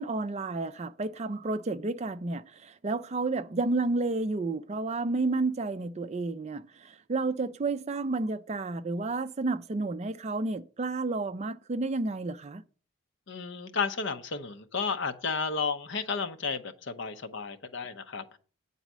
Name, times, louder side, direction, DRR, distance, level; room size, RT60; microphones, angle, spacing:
voice 1, 0.0-12.6, right 3 dB, 30° right, 0.4 m, -31 dB
voice 2, 13.3-18.4, left 5 dB, 55° left, 0.8 m, -32 dB
9.1 x 4.1 x 7.3 m
head